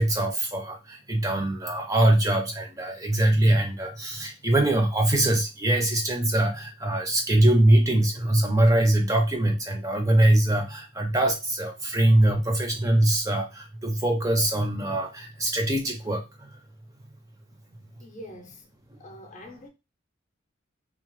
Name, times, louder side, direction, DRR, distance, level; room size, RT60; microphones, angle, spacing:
voice 1, 0.0-16.6, right 1 dB, 15° right, 0.4 m, -23 dB
voice 2, 18.0-18.7 19.0-19.7, equal, 35° left, 0.5 m, -44 dB
2.8 x 2.0 x 3.0 m
head